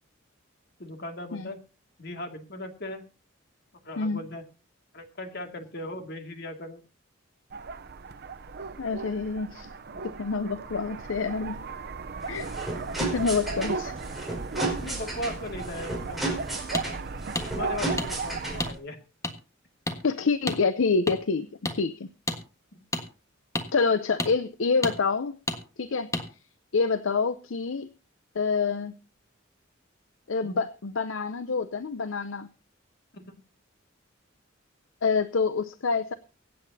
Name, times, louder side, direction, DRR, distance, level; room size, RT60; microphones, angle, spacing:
voice 1, 0.8-1.6 2.0-3.1 3.8-4.5 4.9-6.8 14.6-16.3 17.5-19.0 22.7-22.8 30.4-30.6 33.1-33.4, left 1 dB, 55° left, 5 dB, 2.3 m, -38 dB
sound 1, 7.5-18.7, right 4 dB, 50° right, 0.7 m, -36 dB
voice 2, 8.8-9.7 10.0-11.6 12.3-12.5 13.0-13.9 20.0-21.5 21.7-22.1 23.7-25.4 25.8-26.1 26.7-27.9 28.3-28.9 30.3-32.5 35.0-36.1, left 4 dB, 70° left, 12 dB, 0.7 m, -27 dB
sound 2, 12.2-18.8, right 2 dB, ahead, 4.8 m, -34 dB
sound 3, 16.7-16.9 17.4-17.5 18.0-18.1 18.6-18.7 19.2-19.3 19.9-20.0 20.5-20.6 21.1-21.2 21.6-21.8 22.3-22.4 22.9-23.0 23.5-23.7 24.2-24.3 24.8-25.0 25.5-25.6 26.1-26.3, left 2 dB, 15° left, 1.5 m, -29 dB
24.0 x 8.7 x 2.8 m, 0.34 s
head